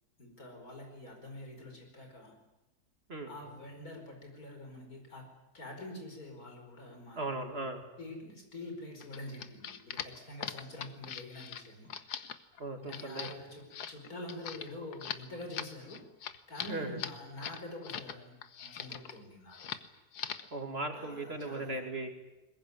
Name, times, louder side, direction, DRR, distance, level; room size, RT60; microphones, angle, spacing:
voice 1, 0.2-2.3 3.3-5.3 5.5-7.4 8.0-11.9 12.8-16.0 16.5-18.3 18.6-19.8 20.9-21.9, left 1 dB, 65° left, 3 dB, 5.5 m, -46 dB
voice 2, 7.2-7.9 12.6-13.3 16.7-17.0 20.5-22.1, right 2 dB, 40° right, 4 dB, 2.6 m, -37 dB
sound 1, 9.0-18.1 18.4-19.2 19.5-19.9 20.1-20.5, left 8 dB, 85° left, 1.7 m, -41 dB
21.5 x 21.0 x 9.8 m, 1.0 s
omnidirectional pair, 1.6 m